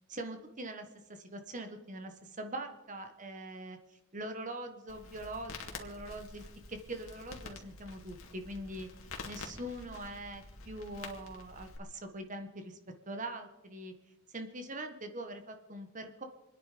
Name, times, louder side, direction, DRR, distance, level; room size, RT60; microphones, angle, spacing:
voice 1, 0.1-3.8 4.1-8.9 9.2-12.8 13.1-13.9 14.3-16.2, right 1 dB, 35° right, 6 dB, 1.4 m, -43 dB
Crackle, 4.9-11.8, left 3 dB, 85° left, 2.2 m, -48 dB
26.5 x 10.0 x 5.2 m, 0.96 s
head